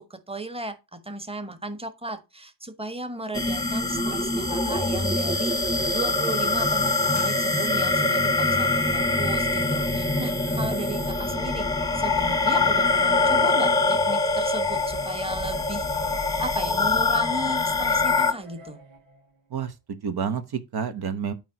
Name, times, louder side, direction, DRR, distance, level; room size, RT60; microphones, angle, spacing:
voice 1, 0.0-5.6 5.9-15.8 16.4-18.8, right 2 dB, 15° right, 1.4 m, -35 dB
sound 1, 3.3-18.3, left 3 dB, 10° left, 0.9 m, -24 dB
sound 2, 3.3-19.4, right 4 dB, 85° right, 1.9 m, -47 dB
sound 3, 7.1-8.1, right 3 dB, 30° right, 2.7 m, -47 dB
voice 2, 19.5-21.3, right 7 dB, 60° right, 1.1 m, -29 dB
8.8 x 3.1 x 5.9 m
cardioid pair, 75°, 44 cm